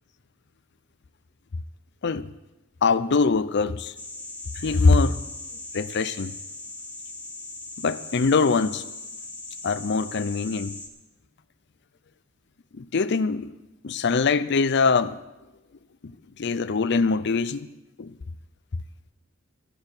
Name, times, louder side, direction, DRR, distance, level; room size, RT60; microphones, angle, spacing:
voice 1, 2.8-3.9 4.6-5.2 5.7-6.3 7.8-8.8 9.6-10.8 12.8-13.5 13.8-15.2 16.0-16.1 16.4-17.7 18.0-18.1, left 4 dB, 55° left, 0.6 m, -23 dB
sound 1, 4.0-10.9, left 3 dB, 10° left, 1.4 m, -39 dB
13.0 x 6.7 x 9.7 m
head